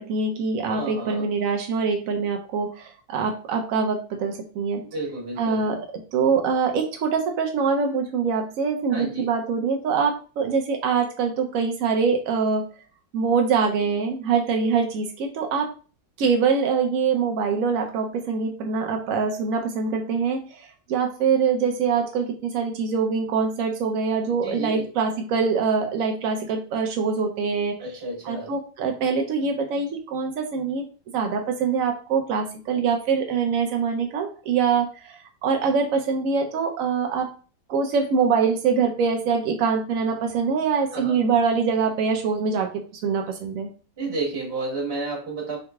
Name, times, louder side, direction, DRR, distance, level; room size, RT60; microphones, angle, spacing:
voice 1, 0.0-4.8 5.4-12.7 13.1-15.7 16.2-27.7 28.2-30.8 31.1-37.3 37.7-43.7, right 5 dB, 90° right, 3 dB, 0.7 m, -24 dB
voice 2, 0.7-1.3 4.9-5.7 8.9-9.3 24.4-24.9 27.8-28.5 40.9-41.2 44.0-45.6, right 3 dB, 40° right, -1 dB, 1.1 m, -31 dB
3.8 x 2.9 x 2.2 m, 0.36 s
omnidirectional pair, 2.0 m